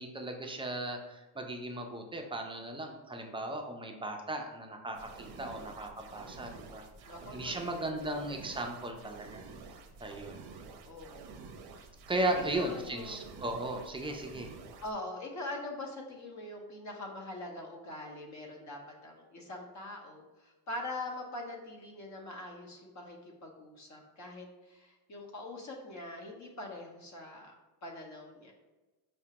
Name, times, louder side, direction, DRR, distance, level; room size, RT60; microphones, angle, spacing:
voice 1, 0.0-6.8 7.3-9.4 10.0-10.4 12.1-14.5, right 1 dB, 15° right, 3 dB, 0.3 m, -36 dB
sound 1, 4.9-14.9, right 4 dB, 60° right, 0.6 m, -50 dB
voice 2, 7.0-8.3 10.8-11.9 12.3-13.2 14.8-27.5 27.8-28.5, left 2 dB, 40° left, 1 dB, 0.8 m, -43 dB
4.7 x 2.2 x 2.8 m, 1.1 s
cardioid pair, 90°, 44 cm